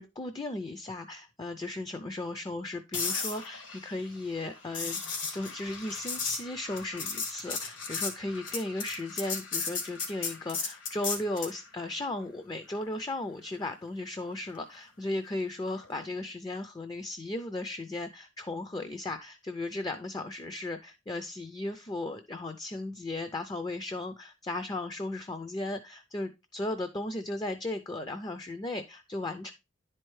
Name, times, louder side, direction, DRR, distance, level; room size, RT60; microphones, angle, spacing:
voice 1, 0.0-29.5, left 2 dB, 20° left, 9 dB, 0.4 m, -36 dB
sound 1, 2.9-11.6 15.8-16.0, left 5 dB, 75° left, 1.7 m, -35 dB
10.5 x 4.4 x 3.0 m, 0.25 s
head